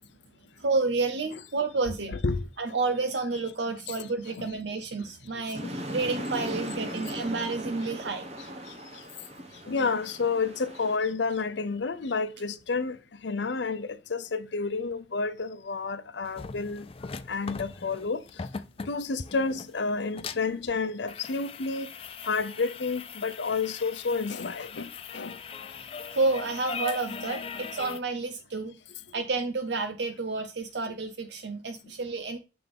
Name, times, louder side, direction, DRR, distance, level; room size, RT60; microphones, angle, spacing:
voice 1, 0.6-2.2 2.6-8.3 26.1-28.8 29.1-32.4, right 3 dB, 70° right, 0.7 m, -30 dB
sound 1, 5.5-11.0, equal, 35° right, 1.0 m, -38 dB
voice 2, 9.7-13.0 13.2-16.8 17.3-18.2 18.9-21.9 22.3-25.4, left 4 dB, 75° left, 0.7 m, -30 dB
sound 2, 16.3-28.0, left 5 dB, 30° left, 0.4 m, -40 dB
7.8 x 3.5 x 5.1 m
head